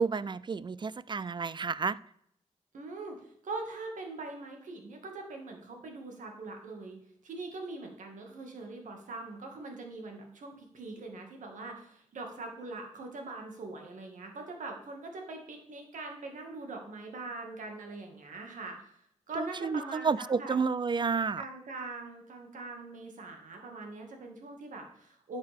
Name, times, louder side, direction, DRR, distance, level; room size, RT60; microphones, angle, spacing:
voice 1, 0.0-2.0 19.4-21.4, right 5 dB, 40° right, 0.4 m, -30 dB
voice 2, 2.7-19.0 19.3-20.6 21.4-25.4, right 3 dB, 90° right, 2.0 m, -42 dB
11.5 x 6.7 x 3.6 m
cardioid pair, 70°, 13 cm